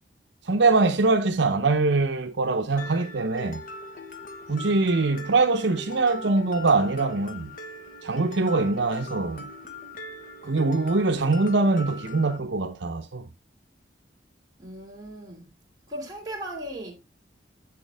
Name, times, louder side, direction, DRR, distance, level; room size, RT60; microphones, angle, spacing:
voice 1, 0.5-3.6 4.5-7.5 8.0-9.5 10.4-13.3, right 3 dB, 70° right, 0.8 m, -23 dB
Mallet percussion, 2.8-12.4, left 2 dB, 45° left, 1.2 m, -41 dB
voice 2, 14.6-15.5 15.9-16.9, right 1 dB, 20° right, 2.9 m, -37 dB
8.2 x 7.0 x 3.4 m
head